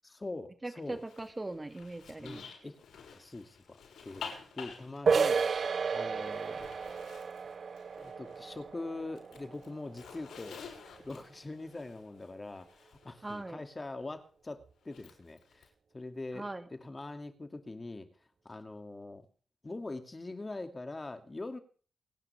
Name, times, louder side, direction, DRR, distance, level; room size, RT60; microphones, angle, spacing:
voice 1, 0.0-1.0 2.2-2.8 3.1-3.8 4.0-5.5 5.9-6.7 8.0-10.6 11.0-15.7 15.9-18.1 18.4-19.2 19.6-21.6, left 2 dB, 25° left, 7 dB, 2.5 m, -43 dB
voice 2, 0.6-2.4 13.2-13.6 16.3-16.7, right 2 dB, 20° right, 8 dB, 2.2 m, -40 dB
Zipper (clothing), 0.8-8.7 9.0-13.4 14.8-15.7, left 6 dB, 85° left, 6.3 m, -51 dB
sound 1, 5.1-10.5, right 5 dB, 55° right, 0.7 m, -33 dB
29.0 x 9.9 x 3.5 m, 0.41 s
cardioid pair, 80°, 0 cm